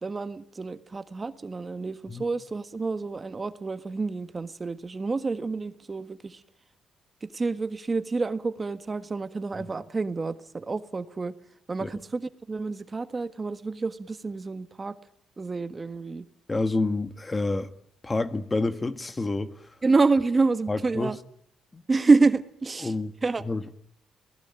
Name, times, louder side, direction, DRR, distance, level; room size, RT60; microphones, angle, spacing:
voice 1, 0.0-6.4 7.2-11.3 11.7-15.0 15.4-16.3 19.8-21.2 21.9-22.9 23.2-23.4, right 3 dB, 30° right, 1.5 m, -27 dB
voice 2, 16.5-17.7 18.0-19.5 20.7-21.1 21.7-21.8 22.8-23.1 23.4-23.7, left 3 dB, 20° left, 1.6 m, -28 dB
29.0 x 19.0 x 9.1 m
cardioid pair, 90°, 0 cm